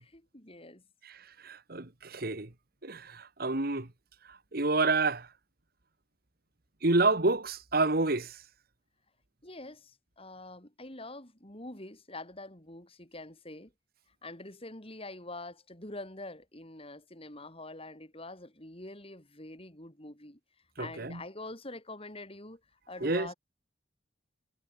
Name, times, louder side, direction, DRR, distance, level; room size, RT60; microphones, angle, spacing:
voice 1, 0.1-0.8 9.4-13.7 14.2-20.4 20.8-22.6 22.9-23.3, left 2 dB, 30° left, 5.2 m, -45 dB
voice 2, 1.0-2.5 2.8-3.9 4.3-5.3 6.8-8.4 20.8-21.2 23.0-23.3, right 3 dB, 50° right, 1.9 m, -29 dB
head